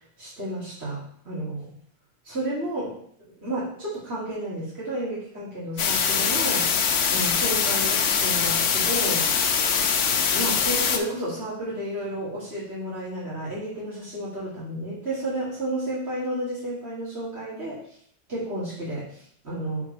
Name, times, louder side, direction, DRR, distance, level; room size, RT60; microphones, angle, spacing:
voice 1, 0.2-1.7 2.2-3.0 3.4-6.7 7.1-9.3 10.0-10.1 10.3-17.8 18.3-19.8, right 1 dB, 65° right, -10 dB, 3.2 m, -32 dB
sound 1, 5.8-11.0, left 6 dB, 85° left, 1.1 m, -23 dB
6.0 x 4.0 x 5.9 m, 0.63 s
omnidirectional pair, 1.2 m